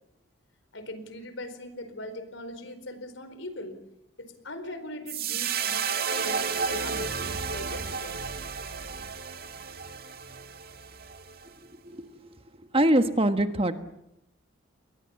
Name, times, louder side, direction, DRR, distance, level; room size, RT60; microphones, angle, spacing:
voice 1, 0.7-3.8 4.2-8.4, left 1 dB, 75° left, 10 dB, 4.5 m, -40 dB
sound 1, 5.1-11.5, right 6 dB, 50° right, 1.6 m, -32 dB
voice 2, 11.8-12.3 12.7-13.8, right 1 dB, 30° right, 8 dB, 1.5 m, -24 dB
29.5 x 22.5 x 7.3 m, 0.82 s
head